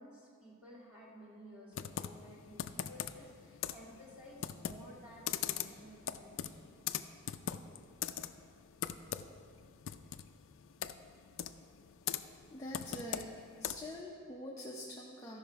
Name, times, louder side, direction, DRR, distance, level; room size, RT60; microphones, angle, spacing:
voice 1, 0.0-6.7, equal, 5° right, -6 dB, 1.9 m, -54 dB
Computer keyboard, 1.7-14.0, left 9 dB, 60° left, 0.3 m, -42 dB
voice 2, 12.5-13.3 13.6-15.4, left 1 dB, 15° left, -3 dB, 0.6 m, -45 dB
14.0 x 5.7 x 4.6 m, 2.4 s
head